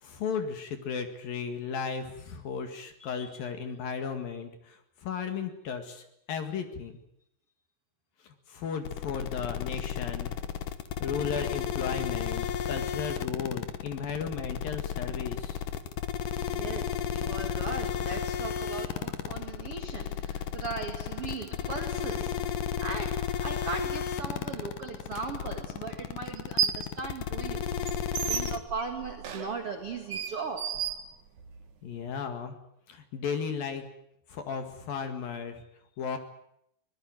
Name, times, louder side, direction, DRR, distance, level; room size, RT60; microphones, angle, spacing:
voice 1, 0.0-4.8 5.0-7.0 8.5-10.3 11.0-15.6 31.8-32.6 32.9-33.8 34.3-35.6 36.0-36.2, left 6 dB, 55° left, 3.1 m, -35 dB
voice 2, 3.0-3.5 16.5-27.7 28.2-31.0, right 4 dB, 75° right, 1.3 m, -38 dB
sound 1, 8.8-28.6, left 9 dB, 80° left, 1.9 m, -33 dB
sound 2, 25.1-25.2 26.3-26.9 27.3-31.7, right 9 dB, 55° right, 2.4 m, -34 dB
23.5 x 19.5 x 9.1 m
omnidirectional pair, 5.8 m